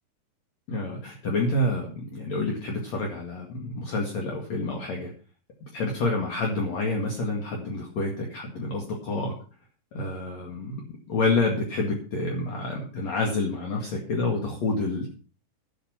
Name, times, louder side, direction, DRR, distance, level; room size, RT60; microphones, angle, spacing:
voice 1, 0.7-5.1 5.7-9.3 9.9-15.1, left 2 dB, 50° left, 0 dB, 2.3 m, -28 dB
13.0 x 8.8 x 5.7 m, 0.38 s
omnidirectional pair, 5.8 m